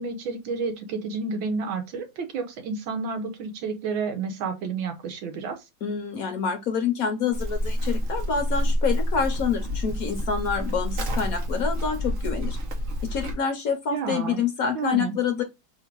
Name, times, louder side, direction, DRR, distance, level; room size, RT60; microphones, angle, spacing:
voice 1, 0.0-5.6 13.9-14.4 14.7-15.2, right 4 dB, 85° right, 1.8 m, -30 dB
voice 2, 5.8-12.6 13.0-15.4, left 6 dB, 60° left, 1.0 m, -27 dB
Livestock farm animals working animals, 7.3-13.3, left 1 dB, 50° right, 1.2 m, -28 dB
3.6 x 2.7 x 4.4 m
omnidirectional pair, 2.1 m